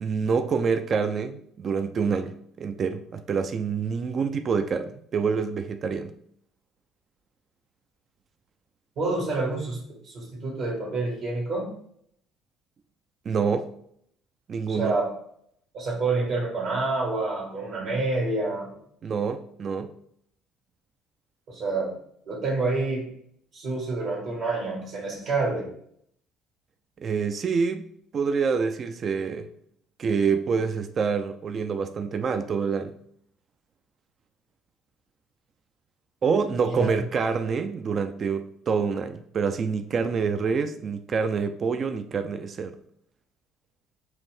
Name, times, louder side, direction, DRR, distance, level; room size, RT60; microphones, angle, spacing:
voice 1, 0.0-6.1 13.3-13.7 14.5-15.0 19.0-19.9 27.0-27.9 28.1-29.5 30.0-32.9 36.2-42.8, right 5 dB, 45° right, 0.3 m, -26 dB
voice 2, 9.0-11.7 14.7-15.1 15.7-18.7 21.5-21.9 22.2-23.1 23.5-25.7 36.6-37.0, right 3 dB, 70° right, 1.4 m, -28 dB
4.5 x 2.6 x 3.3 m
hypercardioid pair, 60°, 0 cm